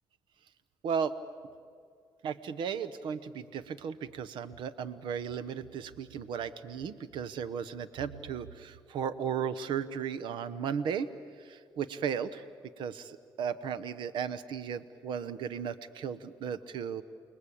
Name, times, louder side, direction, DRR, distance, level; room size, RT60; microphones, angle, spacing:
voice 1, 0.8-1.2 2.2-11.1 11.4-12.4 12.8-17.0, right 7 dB, 80° right, 13 dB, 1.0 m, -35 dB
29.5 x 21.0 x 8.7 m, 2.2 s
cardioid pair, 80°, 8 cm